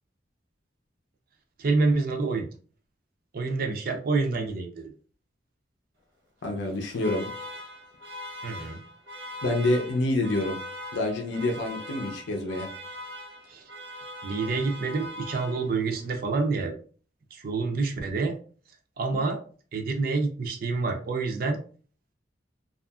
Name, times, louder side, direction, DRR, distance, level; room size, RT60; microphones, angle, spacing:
voice 1, 1.6-2.5 3.3-4.9 8.4-8.8 13.5-13.6 14.2-16.7 17.3-18.4 19.0-19.4 19.7-21.6, right 3 dB, 55° right, 3 dB, 0.5 m, -27 dB
voice 2, 6.4-7.3 9.4-10.6 10.9-12.7, left 2 dB, 75° left, 2 dB, 0.5 m, -27 dB
Alarm, 6.6-16.0, left 1 dB, 75° right, 0.9 m, -41 dB
2.7 x 2.4 x 2.3 m, 0.42 s
head